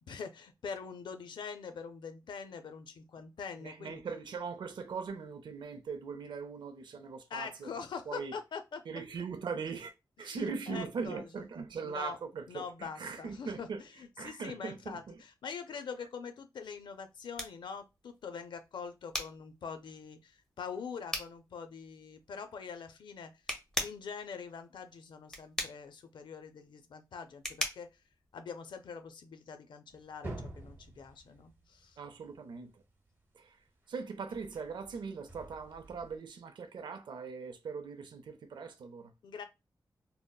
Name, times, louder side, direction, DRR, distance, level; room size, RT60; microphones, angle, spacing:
voice 1, 0.1-4.0 7.3-8.8 10.2-11.3 11.8-12.2 12.5-23.3 23.8-27.9 28.3-32.0 39.2-39.4, left 6 dB, 85° left, 0.4 m, -44 dB
voice 2, 3.6-7.7 8.1-8.3 8.9-9.9 10.2-13.8 14.2-15.2 32.0-32.8 33.3-33.6 33.9-39.1, right 5 dB, 85° right, 0.4 m, -40 dB
sound 1, 16.6-29.1, left 1 dB, 5° left, 0.6 m, -42 dB
sound 2, 29.9-33.2 34.3-36.2, right 1 dB, 30° right, 1.0 m, -48 dB
3.6 x 2.0 x 2.2 m
wide cardioid pair, 140°, 8 cm